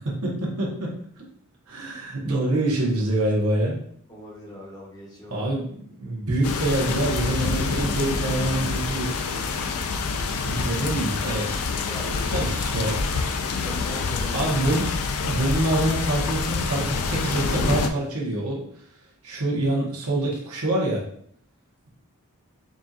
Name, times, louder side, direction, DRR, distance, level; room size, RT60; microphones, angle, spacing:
voice 1, 0.0-0.9 1.7-3.8 5.3-9.1 10.4-11.6 12.3-13.0 14.3-14.8 15.2-18.6 19.2-21.0, right 1 dB, 85° right, -3 dB, 1.2 m, -25 dB
voice 2, 4.1-5.5 6.1-6.2 11.9-12.5 13.6-14.5, left 1 dB, 15° left, -3 dB, 0.9 m, -40 dB
sound 1, 6.4-17.9, left 4 dB, 80° left, 0.4 m, -27 dB
5.3 x 2.7 x 2.4 m, 0.65 s
head